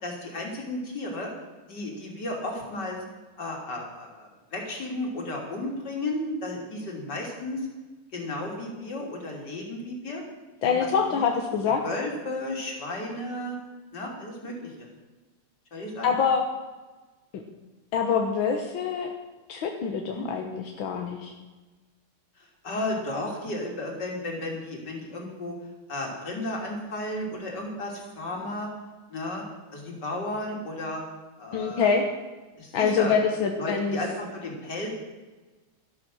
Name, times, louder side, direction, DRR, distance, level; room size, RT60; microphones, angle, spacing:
voice 1, 0.0-1.3 1.7-3.0 3.4-7.7 8.1-10.2 10.6-11.3 11.8-13.6 13.9-14.9 15.7-16.1 20.1-20.3 22.4-25.5 25.9-28.7 29.1-29.4 29.7-31.0 31.4-32.0 32.6-33.2 33.6-35.0, left 1 dB, 60° left, 0 dB, 3.7 m, -33 dB
voice 2, 10.6-11.8 16.0-16.4 17.3-17.4 17.9-19.1 19.5-21.3 31.5-32.1 32.7-34.0, left 6 dB, 85° left, 3 dB, 1.9 m, -25 dB
13.0 x 12.0 x 6.2 m, 1.2 s
omnidirectional pair, 2.1 m